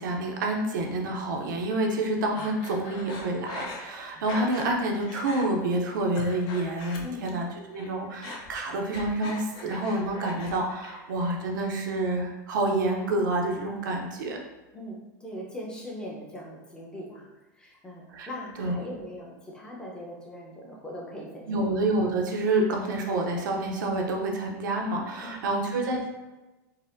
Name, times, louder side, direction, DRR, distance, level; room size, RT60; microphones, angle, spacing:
voice 1, 0.0-14.4 18.1-18.3 18.6-18.7 21.5-26.1, right 2 dB, 85° right, 1 dB, 0.6 m, -28 dB
Breathing, 2.3-4.7 5.0-5.5 5.9-7.5 7.7-10.5 10.8-11.5, left 3 dB, 50° left, 0.6 m, -41 dB
voice 2, 4.1-4.5 7.0-7.4 14.7-17.3 17.6-21.7 25.2-25.7, equal, 10° left, -4 dB, 0.8 m, -41 dB
4.0 x 2.1 x 2.5 m, 1.1 s
supercardioid pair, 110°, 10 cm